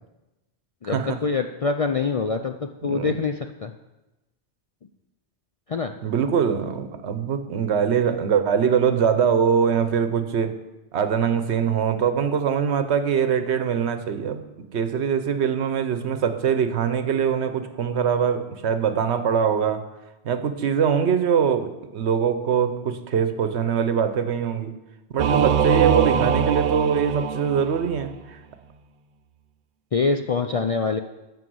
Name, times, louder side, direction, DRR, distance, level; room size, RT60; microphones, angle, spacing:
voice 1, 0.8-3.7 5.7-5.9 29.9-31.0, left 4 dB, 55° left, 6 dB, 0.4 m, -25 dB
voice 2, 2.8-3.1 6.0-10.5 10.9-19.8 20.2-24.7 25.1-28.4, right 7 dB, 75° right, 10 dB, 1.1 m, -23 dB
Singing / Musical instrument, 25.2-28.1, right 8 dB, 60° right, 0.6 m, -22 dB
11.0 x 5.4 x 7.8 m, 1.0 s
omnidirectional pair, 1.1 m